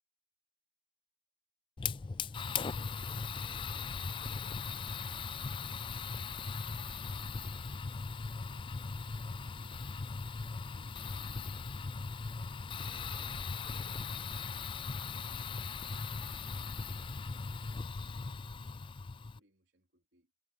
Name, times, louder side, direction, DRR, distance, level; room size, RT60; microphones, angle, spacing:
Fire, 1.8-19.4, left 5 dB, 30° left, 0.4 m, -39 dB
voice 1, 2.1-8.9 9.3-10.1 10.6-12.2 12.6-18.8 19.2-20.3, right 1 dB, 85° right, 3.6 m, -72 dB
head